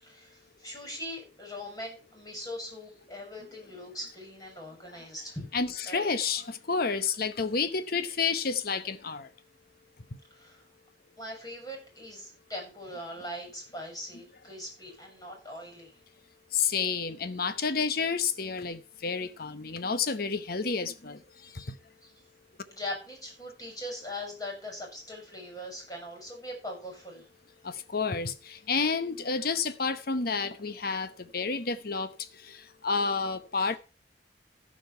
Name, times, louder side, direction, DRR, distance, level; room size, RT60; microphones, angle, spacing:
voice 1, 0.0-5.4 5.9-6.1 10.3-10.6 11.2-16.0 22.0-22.1 22.7-27.3 29.4-29.6, left 1 dB, 20° left, 6.2 m, -41 dB
voice 2, 5.5-9.3 16.5-21.2 21.5-21.7 27.6-32.1 32.4-33.8, left 5 dB, 55° left, 1.0 m, -30 dB
14.5 x 5.3 x 5.7 m
head